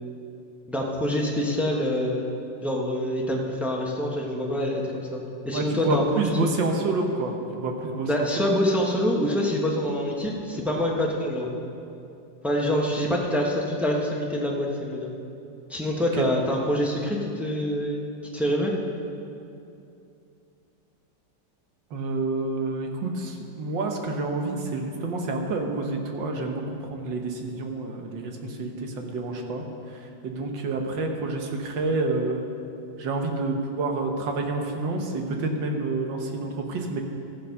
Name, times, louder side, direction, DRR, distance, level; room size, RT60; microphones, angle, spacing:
voice 1, 0.7-2.3 2.6-6.0 8.0-11.5 12.4-15.1 15.7-18.7, equal, ahead, -2 dB, 0.9 m, -26 dB
voice 2, 5.5-8.5 16.2-16.4 21.9-29.6 30.2-32.4 33.0-37.0, right 3 dB, 85° right, 2 dB, 1.8 m, -28 dB
15.0 x 6.9 x 5.3 m, 2.6 s
omnidirectional pair, 2.0 m